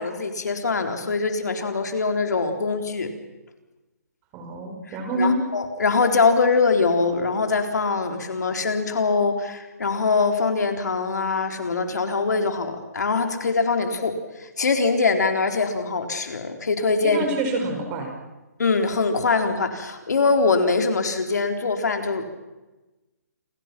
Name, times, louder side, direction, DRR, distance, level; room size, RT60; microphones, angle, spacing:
voice 1, 0.0-3.1 4.9-14.1 14.4-17.3 18.6-22.4, left 4 dB, 75° left, 5 dB, 3.8 m, -23 dB
voice 2, 4.3-5.4 17.0-18.1, right 1 dB, 20° right, 3 dB, 5.6 m, -26 dB
29.0 x 23.0 x 6.0 m, 1.1 s
hypercardioid pair, 155°, 9 cm